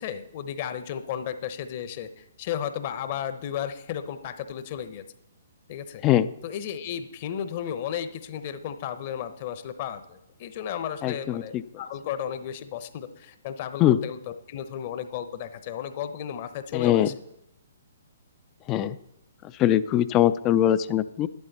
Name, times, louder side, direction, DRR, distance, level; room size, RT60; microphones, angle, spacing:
voice 1, 0.0-5.0 5.7-6.0 6.4-17.1, left 9 dB, 40° left, 11 dB, 0.9 m, -34 dB
voice 2, 11.0-11.4 13.8-14.0 16.7-17.1 18.7-19.0 19.6-21.3, left 12 dB, 25° left, 15 dB, 0.4 m, -21 dB
12.0 x 11.0 x 4.2 m, 0.81 s
figure-of-eight pair, 125°, 0 cm